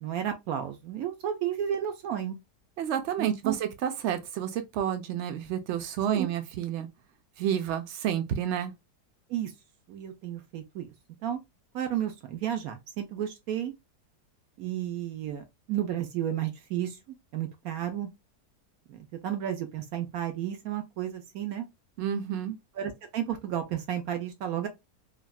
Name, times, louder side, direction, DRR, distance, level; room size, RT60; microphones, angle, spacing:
voice 1, 0.0-2.4 3.2-3.5 6.1-6.3 9.3-9.5 9.9-10.9 11.2-11.4 11.7-13.7 14.6-17.0 17.3-18.1 18.9-21.7 22.8-24.7, right 10 dB, 70° right, 1.0 m, -32 dB
voice 2, 2.8-6.9 7.4-8.7 22.0-22.6, right 9 dB, 85° right, 0.6 m, -30 dB
3.4 x 2.4 x 2.3 m
omnidirectional pair, 1.8 m